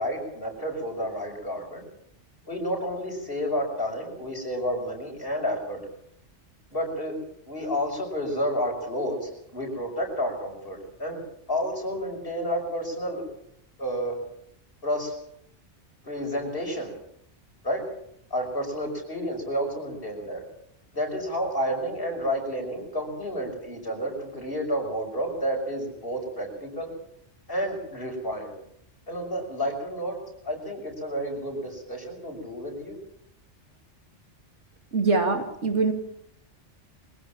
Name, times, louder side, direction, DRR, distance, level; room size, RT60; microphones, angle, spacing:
voice 1, 0.0-1.8 2.5-5.8 6.7-7.1 7.5-11.2 11.5-13.2 13.8-14.2 14.8-15.2 16.0-16.9 17.6-17.8 18.3-20.4 20.9-26.9 27.5-28.5 29.1-30.2 30.4-33.0, equal, 50° left, 1 dB, 6.1 m, -30 dB
voice 2, 34.9-35.9, right 3 dB, 80° right, 4 dB, 3.0 m, -23 dB
23.0 x 16.0 x 7.4 m, 0.73 s
omnidirectional pair, 1.2 m